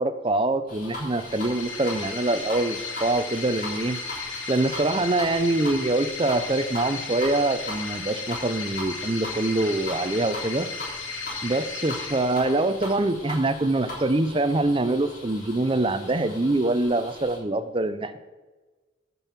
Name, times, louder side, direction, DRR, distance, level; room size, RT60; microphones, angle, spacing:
voice 1, 0.0-4.0 4.5-10.7 11.4-18.2, right 2 dB, 25° right, 11 dB, 0.6 m, -24 dB
sound 1, 0.7-17.4, left 1 dB, 45° left, 3.5 m, -40 dB
sound 2, 1.0-13.0, left 4 dB, 90° left, 2.1 m, -35 dB
10.0 x 5.5 x 7.3 m, 1.2 s
head